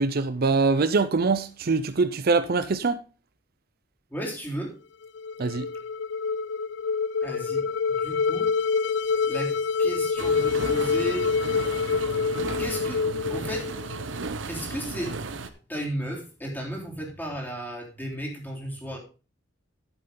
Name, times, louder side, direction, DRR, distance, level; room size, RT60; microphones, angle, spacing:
voice 1, 0.0-3.0 5.4-5.7, right 4 dB, 55° right, 0.6 m, -23 dB
voice 2, 4.1-4.7 7.2-7.7 8.0-8.5 9.3-9.5 9.8-11.3 12.6-13.0 13.3-13.7 14.5-15.4 15.7-19.0, equal, 10° left, 3.6 m, -34 dB
sound 1, 5.0-14.2, left 5 dB, 65° left, 0.5 m, -26 dB
sound 2, 10.2-15.5, right 3 dB, 80° right, 0.9 m, -35 dB
11.0 x 7.9 x 3.9 m
head